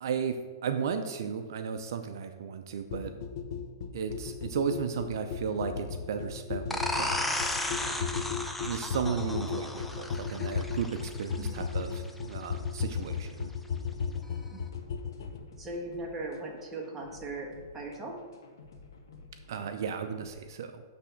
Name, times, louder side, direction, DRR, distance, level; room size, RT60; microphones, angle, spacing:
voice 1, 0.0-3.2 3.9-8.3 8.6-13.5 19.5-20.8, right 6 dB, 65° right, 8 dB, 0.5 m, -35 dB
sound 1, 2.9-15.4, left 6 dB, 60° left, 0.7 m, -35 dB
sound 2, 6.7-12.1, left 1 dB, 5° left, 0.5 m, -34 dB
sound 3, 13.9-20.3, left 3 dB, 85° left, 1.2 m, -53 dB
voice 2, 15.6-18.2, right 2 dB, 15° right, -1 dB, 1.3 m, -39 dB
8.4 x 3.4 x 5.8 m, 1.5 s
hypercardioid pair, 140°, 2 cm